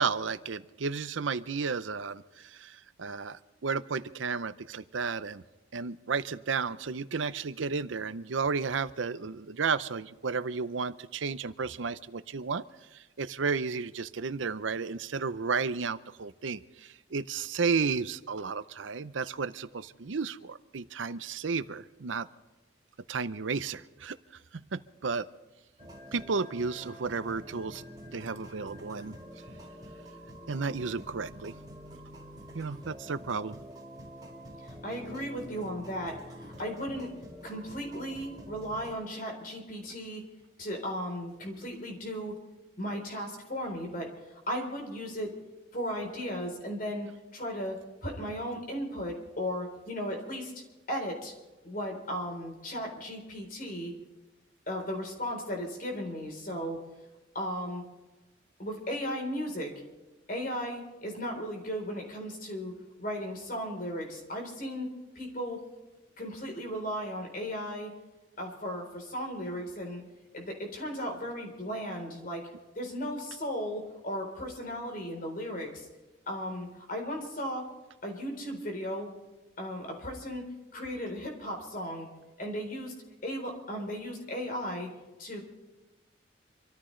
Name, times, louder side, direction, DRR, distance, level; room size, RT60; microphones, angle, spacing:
voice 1, 0.0-5.4 5.7-12.6 12.9-22.3 23.1-24.2 24.5-25.3 26.1-29.2 30.5-31.5 32.5-33.6, right 5 dB, 80° right, 14 dB, 0.6 m, -33 dB
sound 1, 25.8-39.0, equal, 20° right, 3.7 m, -47 dB
voice 2, 34.6-37.1 37.4-40.2 40.6-42.4 42.8-45.3 45.7-50.5 50.9-51.3 51.6-53.9 54.7-56.8 57.3-57.8 58.6-59.7 60.3-64.9 65.2-65.6 66.2-67.9 68.4-70.0 70.3-72.4 72.7-75.9 76.3-77.7 78.0-79.1 79.6-82.1 82.4-82.9 83.2-84.9 85.2-85.4, equal, 45° left, 2 dB, 3.9 m, -36 dB
26.5 x 14.0 x 3.3 m, 1.2 s
head